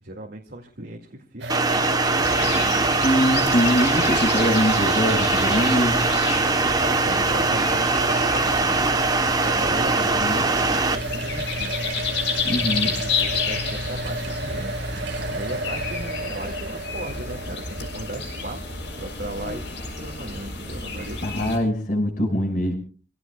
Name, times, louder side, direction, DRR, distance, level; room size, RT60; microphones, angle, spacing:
voice 1, 0.0-2.9 6.6-11.8 12.8-14.7 15.3-18.6 19.0-21.6, right 1 dB, 60° right, -1 dB, 2.2 m, -37 dB
sound 1, 1.4-20.1, right 1 dB, 75° right, 1.9 m, -32 dB
sound 2, 1.5-11.0, right 3 dB, 20° right, 1.0 m, -22 dB
sound 3, 2.2-21.6, left 4 dB, 75° left, 6.2 m, -31 dB
voice 2, 3.0-6.0 10.1-10.4 12.4-12.9 21.2-22.8, equal, 50° left, 1 dB, 5.5 m, -23 dB
27.5 x 17.0 x 2.3 m, 0.40 s
head